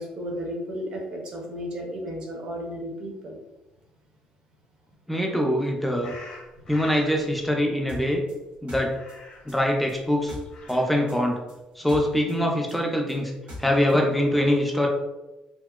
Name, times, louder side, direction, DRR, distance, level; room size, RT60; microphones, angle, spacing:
voice 1, 0.0-3.4, equal, 40° right, 0 dB, 0.6 m, -33 dB
voice 2, 5.1-6.1 6.7-8.2 8.6-9.0 9.5-10.4 10.7-11.4 11.8-13.3 13.6-14.9, left 1 dB, 5° left, 0 dB, 0.4 m, -23 dB
sound 1, 6.0-7.2 8.9-9.6 10.4-11.2, left 3 dB, 35° left, 0.7 m, -45 dB
sound 2, 7.9-10.8 11.1-14.0, left 1 dB, 60° right, 1.1 m, -41 dB
2.8 x 2.7 x 2.3 m, 1.0 s
cardioid pair, 165°, 2 cm